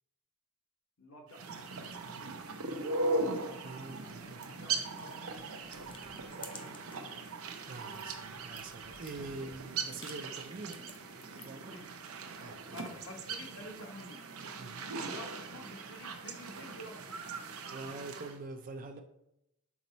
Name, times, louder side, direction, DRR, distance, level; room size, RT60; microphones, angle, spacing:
voice 1, 1.0-3.2 3.8-7.4 7.9-8.0 11.7-11.9 12.7-14.2 14.9-17.3, left 2 dB, 60° left, 3 dB, 1.0 m, -52 dB
sound 1, 1.3-18.4, right 3 dB, 80° right, 0.7 m, -39 dB
voice 2, 3.6-4.4 7.6-10.8 11.4-11.8 12.4-12.9 14.6-14.8 17.7-19.0, right 3 dB, 40° right, 6 dB, 0.4 m, -45 dB
sound 2, 4.1-7.1 7.5-11.7, left 4 dB, 25° left, 0.5 m, -55 dB
6.1 x 4.1 x 4.0 m, 0.83 s
head